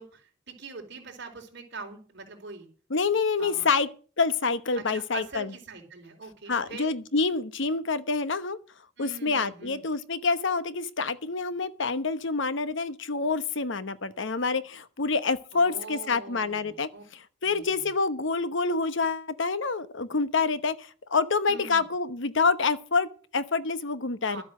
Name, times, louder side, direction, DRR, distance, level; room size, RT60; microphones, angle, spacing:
voice 1, 0.0-2.7 3.4-3.7 4.8-6.9 9.0-9.8 15.5-17.0 17.4-17.8 21.5-21.9 24.3-24.4, right 4 dB, 60° right, 4.2 m, -43 dB
voice 2, 2.9-3.9 4.2-5.5 6.5-8.6 9.0-24.4, left 4 dB, 70° left, 1.1 m, -27 dB
12.5 x 8.1 x 7.5 m
head